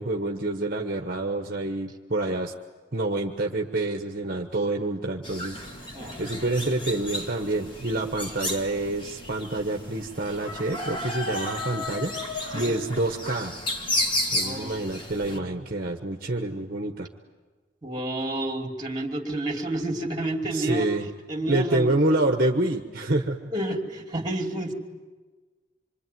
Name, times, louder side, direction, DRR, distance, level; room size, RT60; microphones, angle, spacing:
voice 1, 0.0-2.5 2.9-5.6 6.2-12.2 12.5-13.5 14.3-17.1 20.5-21.1 21.5-23.5, right 2 dB, 50° right, 3 dB, 1.2 m, -27 dB
sound 1, 5.2-15.4, left 1 dB, 25° left, 2.1 m, -33 dB
voice 2, 14.4-14.9 17.8-20.9 21.3-21.9 23.5-24.7, right 1 dB, 20° right, 4 dB, 2.9 m, -30 dB
26.5 x 24.0 x 9.4 m, 1.3 s
head